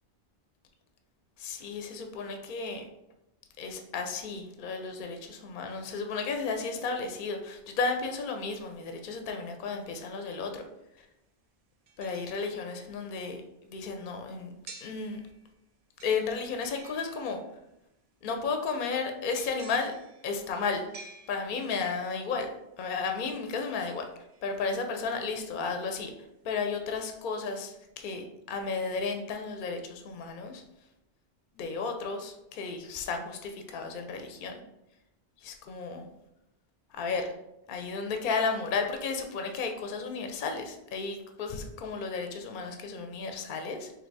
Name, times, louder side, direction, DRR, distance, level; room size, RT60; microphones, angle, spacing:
voice 1, 1.4-2.8 3.6-10.7 11.0-11.1 12.0-14.5 14.8-15.2 16.0-17.4 18.2-19.9 20.2-20.9 21.3-22.5 22.8-24.0 24.4-26.1 26.4-30.6 31.5-34.6 35.4-36.1 36.9-37.3 37.7-43.9, left 4 dB, 60° left, 5 dB, 0.6 m, -33 dB
sound 1, 9.9-10.0 11.9-13.0 14.7-15.6 16.0-17.7 19.4-21.9 23.8-25.0 25.4-25.5, right 4 dB, 65° right, 0.3 m, -52 dB
3.4 x 2.8 x 3.9 m, 0.87 s
omnidirectional pair, 1.1 m